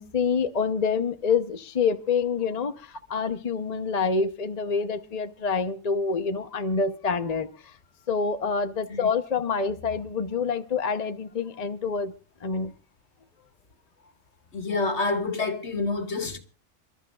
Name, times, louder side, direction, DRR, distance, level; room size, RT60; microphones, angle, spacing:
voice 1, 0.0-7.7 8.1-12.1 12.4-12.7, left 5 dB, 35° left, 0.8 m, -27 dB
voice 2, 14.5-16.4, left 3 dB, 60° left, 2.0 m, -28 dB
28.5 x 13.0 x 2.4 m
omnidirectional pair, 1.3 m